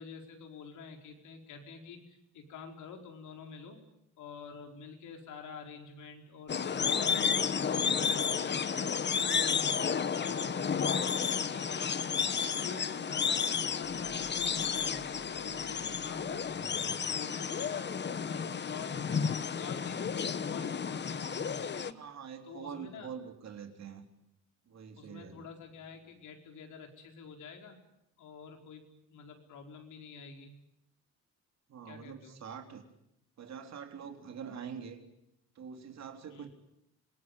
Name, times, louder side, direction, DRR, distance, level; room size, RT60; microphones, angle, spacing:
voice 1, 0.0-3.8 4.2-8.7 9.1-9.7 10.1-11.9 12.3-16.6 17.1-17.9 18.2-22.0 22.5-23.1 25.0-27.8 28.2-28.8 29.1-30.5 31.8-32.4 36.3-36.5, left 5 dB, 80° left, 3 dB, 4.6 m, -47 dB
sound 1, 6.5-21.9, left 6 dB, 35° left, 1.1 m, -32 dB
sound 2, 13.8-17.0, left 7 dB, 55° left, 2.0 m, -54 dB
voice 2, 16.6-17.0 21.9-24.1 24.7-25.5 31.7-32.9 33.4-35.0 35.6-36.5, right 7 dB, 60° right, 5 dB, 3.7 m, -45 dB
26.0 x 19.5 x 9.2 m, 0.83 s
cardioid pair, 90°, 30 cm